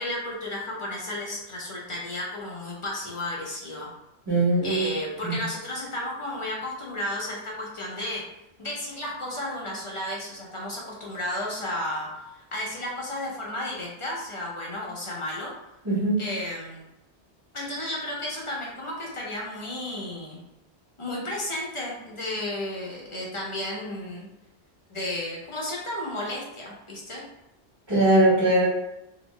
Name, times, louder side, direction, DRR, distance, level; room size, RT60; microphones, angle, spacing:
voice 1, 0.0-3.9 4.6-8.2 8.6-12.1 12.5-15.5 16.2-16.8 17.5-20.4 21.0-24.3 24.9-27.2, left 1 dB, 30° left, -4 dB, 0.9 m, -33 dB
voice 2, 4.3-4.9 5.2-5.3 15.8-16.2 27.9-28.7, right 1 dB, 25° right, -10 dB, 1.6 m, -20 dB
3.1 x 2.8 x 3.1 m, 0.89 s
omnidirectional pair, 1.1 m